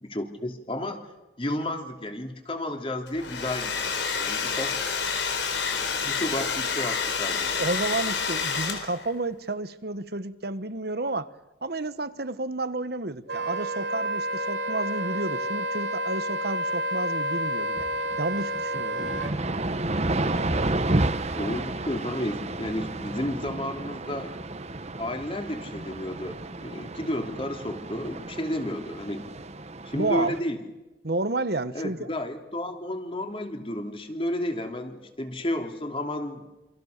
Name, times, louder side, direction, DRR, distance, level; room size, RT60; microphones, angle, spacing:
voice 1, 0.0-1.0 1.4-4.8 5.7-7.6 21.4-24.3 25.0-29.3 29.8-30.6 31.7-36.4, left 1 dB, 30° left, 3.0 m, -32 dB
Domestic sounds home sounds, 3.1-9.1, left 5 dB, 90° left, 4.1 m, -28 dB
voice 2, 7.6-11.3 11.6-17.9 18.2-19.0 29.9-30.3 31.0-32.1, right 2 dB, 60° right, 1.3 m, -31 dB
Wind instrument woodwind instrument, 13.3-19.3, right 1 dB, 80° right, 3.1 m, -29 dB
sound 1, 17.4-17.5 17.8-30.4, right 2 dB, 40° right, 1.2 m, -31 dB
28.0 x 26.5 x 6.8 m
head